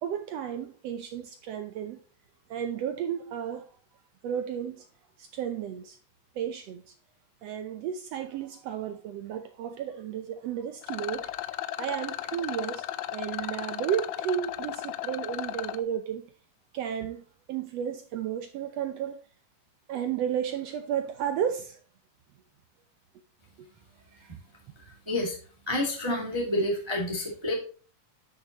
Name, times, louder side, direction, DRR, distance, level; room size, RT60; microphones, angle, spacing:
voice 1, 0.0-2.0 2.5-3.7 4.2-4.9 5.2-6.0 6.3-6.9 7.4-11.3 11.8-12.9 13.1-16.3 16.7-17.2 17.5-19.2 19.9-21.8 23.6-23.7 24.1-24.3, right 9 dB, 75° right, 1.5 m, -33 dB
Rattle, 10.8-15.8, left 13 dB, 80° left, 1.6 m, -35 dB
voice 2, 25.1-25.4 25.7-27.5, left 1 dB, 10° right, 1.8 m, -28 dB
10.0 x 6.4 x 2.9 m
omnidirectional pair, 3.7 m